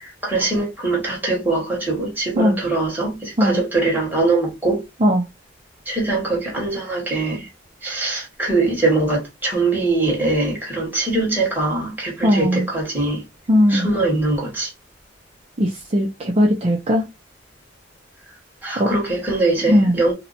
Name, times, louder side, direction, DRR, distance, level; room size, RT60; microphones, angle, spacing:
voice 1, 0.2-4.8 5.9-7.4 7.8-13.2 13.7-14.7 18.6-20.1, right 2 dB, 10° right, 1.4 m, -22 dB
voice 2, 12.2-12.7 13.5-13.9 15.6-17.1 18.8-18.9 19.7-20.0, equal, 35° right, 0.5 m, -18 dB
2.7 x 2.1 x 4.0 m
head